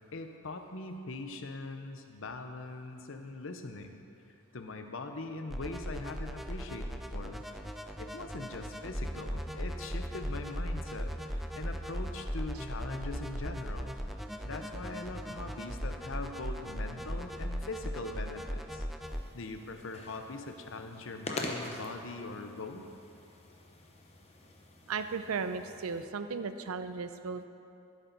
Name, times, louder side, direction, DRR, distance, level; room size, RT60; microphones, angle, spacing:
voice 1, 0.1-4.0 4.5-7.4 8.0-13.9 14.4-18.9 19.3-22.9, left 3 dB, 65° left, 6 dB, 0.8 m, -42 dB
sound 1, 5.5-19.2, equal, ahead, 0.3 m, -38 dB
sound 2, 19.0-26.0, left 2 dB, 30° left, 0.8 m, -45 dB
voice 2, 24.9-27.5, right 5 dB, 85° right, 10 dB, 0.5 m, -36 dB
15.0 x 8.1 x 4.0 m, 2.7 s
head